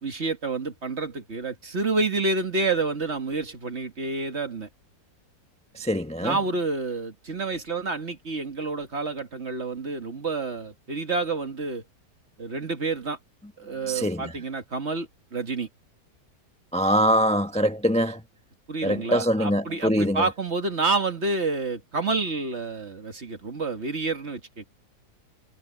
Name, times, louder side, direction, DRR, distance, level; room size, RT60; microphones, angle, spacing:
voice 1, 0.0-4.7 6.2-11.8 12.4-13.2 13.6-15.7 18.7-24.6, right 3 dB, 40° right, 2.0 m, -29 dB
voice 2, 5.7-6.4 13.9-14.3 16.7-18.2 18.8-20.2, equal, 5° left, 0.6 m, -23 dB
omnidirectional pair, 1.8 m